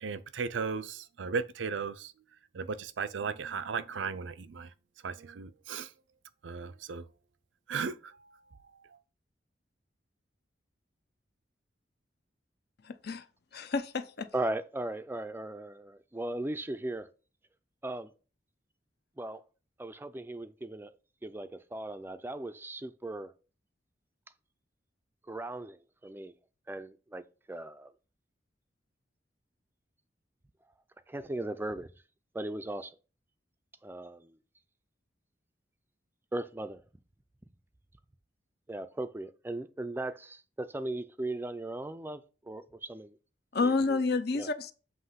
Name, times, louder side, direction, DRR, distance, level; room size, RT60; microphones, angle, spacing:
voice 1, 0.0-2.1 2.5-4.7 5.0-5.9 6.4-7.0 7.7-8.1, right 5 dB, 85° right, 0.5 m, -36 dB
voice 2, 12.9-13.2 13.5-14.3 43.5-44.7, left 3 dB, 60° left, 0.6 m, -29 dB
voice 3, 14.3-17.1 17.8-18.1 19.2-19.4 19.8-20.9 21.2-23.3 25.3-26.3 26.7-27.9 31.1-31.9 32.3-33.0 33.8-34.4 36.3-36.8 38.7-43.2 43.6-44.0 44.3-44.5, right 2 dB, 10° right, 0.4 m, -38 dB
7.7 x 3.0 x 5.6 m
head